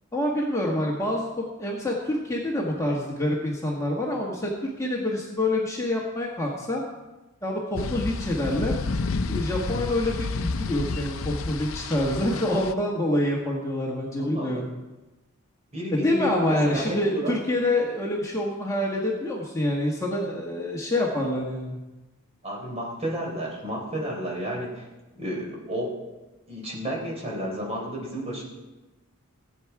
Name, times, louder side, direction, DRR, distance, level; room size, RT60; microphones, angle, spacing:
voice 1, 0.1-4.5 4.8-6.8 7.4-8.7 9.3-14.7 15.9-21.8, left 1 dB, 15° left, -2 dB, 1.5 m, -26 dB
sound 1, 7.8-12.7, left 3 dB, 70° left, 0.5 m, -30 dB
voice 2, 14.2-14.6 15.7-17.3 22.4-24.8 25.1-25.9 26.5-28.4, equal, 30° right, -2 dB, 3.9 m, -31 dB
17.0 x 8.7 x 4.8 m, 1.1 s
head